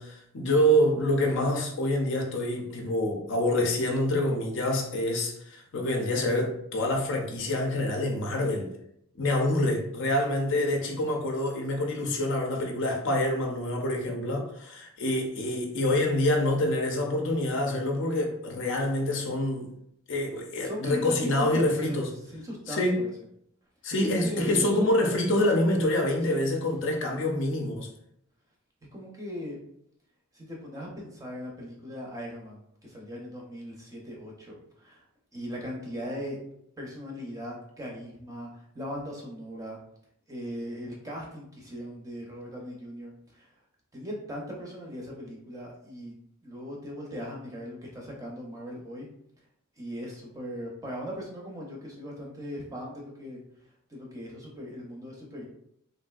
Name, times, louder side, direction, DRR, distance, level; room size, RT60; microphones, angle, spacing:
voice 1, 0.0-8.7 9.2-19.7 20.1-22.1 22.7-23.0 23.8-27.9, left 1 dB, 55° left, 1 dB, 0.5 m, -26 dB
voice 2, 20.6-23.1 24.0-24.7 26.2-26.4 28.9-29.6 30.3-35.1 35.3-36.4 36.8-39.8 40.3-43.5 43.9-46.1 46.4-49.1 49.8-53.4 53.9-55.4, equal, 15° right, -2 dB, 0.6 m, -38 dB
3.2 x 2.5 x 2.3 m, 0.73 s
head